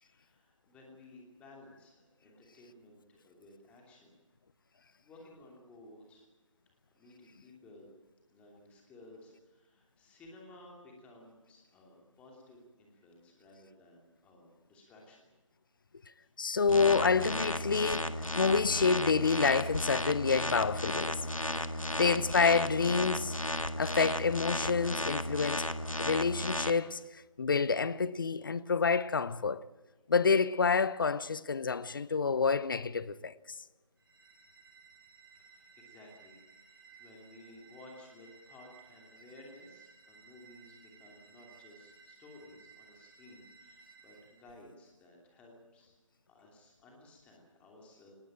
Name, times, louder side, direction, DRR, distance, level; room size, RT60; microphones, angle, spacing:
voice 1, 0.0-4.2 5.0-6.3 6.9-7.9 8.3-15.2 16.2-16.3 35.4-46.0 46.3-48.1, left 2 dB, 5° left, 2.8 m, -56 dB
voice 2, 16.4-21.3 22.0-23.4 23.8-25.7 26.0-29.6 30.1-33.3, left 5 dB, 40° left, 0.8 m, -28 dB
sound 1, 16.7-26.7, left 1 dB, 90° left, 1.6 m, -34 dB
sound 2, 34.0-44.5, right 5 dB, 45° right, 5.1 m, -58 dB
20.0 x 17.5 x 9.0 m
figure-of-eight pair, 155°, 17 cm